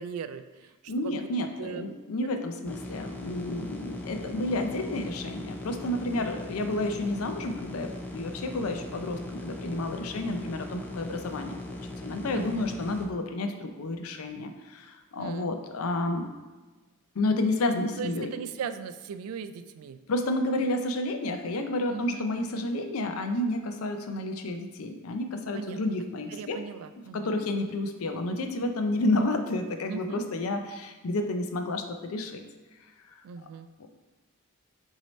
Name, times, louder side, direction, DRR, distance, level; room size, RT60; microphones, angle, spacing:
voice 1, 0.0-1.3 1.6-1.8 3.6-3.7 12.3-12.7 15.2-15.5 18.0-20.0 21.9-22.7 25.5-25.8 26.3-27.4 29.9-30.2 33.2-33.7, right 6 dB, 75° right, 11 dB, 0.3 m, -39 dB
voice 2, 0.9-16.3 17.1-18.3 20.1-26.6 27.1-32.4 33.8-33.9, left 2 dB, 75° left, 6 dB, 0.5 m, -30 dB
sound 1, 2.6-13.1, left 1 dB, 5° left, 0.3 m, -39 dB
6.2 x 2.7 x 3.1 m, 1.3 s
head